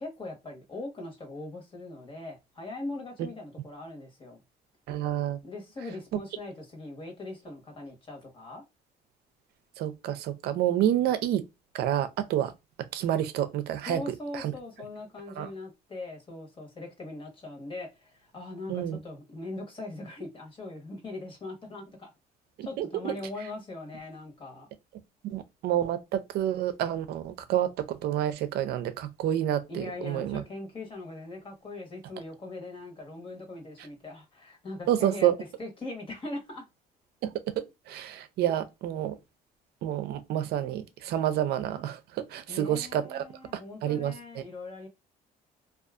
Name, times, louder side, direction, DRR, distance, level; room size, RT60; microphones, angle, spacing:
voice 1, 0.0-4.4 5.4-8.6 13.9-22.1 22.6-24.7 29.7-36.6 42.5-44.9, left 2 dB, 30° left, 1.1 m, -40 dB
voice 2, 4.9-5.4 6.1-6.2 9.8-11.4 11.7-12.5 12.9-14.5 15.4-15.5 18.7-19.0 22.6-23.1 25.2-30.4 34.9-35.3 37.2-37.3 37.9-39.2 39.8-43.2 43.5-44.1, right 11 dB, 70° right, 0.5 m, -29 dB
2.6 x 2.4 x 2.4 m
cardioid pair, 110°, 17 cm